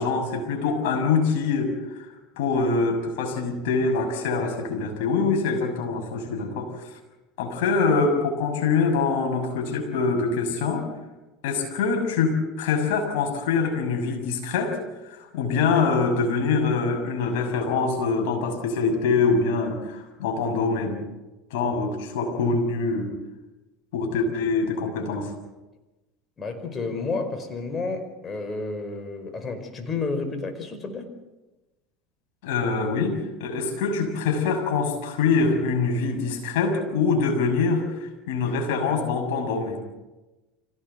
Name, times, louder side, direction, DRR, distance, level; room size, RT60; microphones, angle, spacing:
voice 1, 0.0-2.1 2.4-6.9 7.4-10.9 11.4-14.8 15.0-21.0 21.5-23.1 23.9-25.3 32.4-39.8, left 4 dB, 70° left, 3 dB, 6.6 m, -24 dB
voice 2, 26.4-31.1, left 3 dB, 30° left, 7 dB, 5.2 m, -31 dB
25.5 x 17.5 x 8.3 m, 1.1 s
hypercardioid pair, 80°, 0 cm